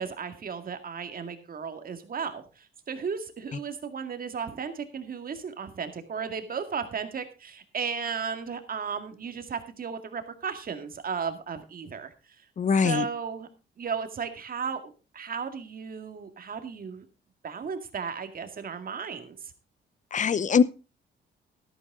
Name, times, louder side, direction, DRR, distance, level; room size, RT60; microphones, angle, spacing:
voice 1, 0.0-12.1 12.8-13.5 13.8-17.1 17.4-19.5, right 6 dB, 45° right, 2.1 m, -35 dB
voice 2, 12.6-13.0 20.1-20.6, left 6 dB, 40° left, 0.7 m, -22 dB
12.0 x 12.0 x 3.7 m
cardioid pair, 90°, 20 cm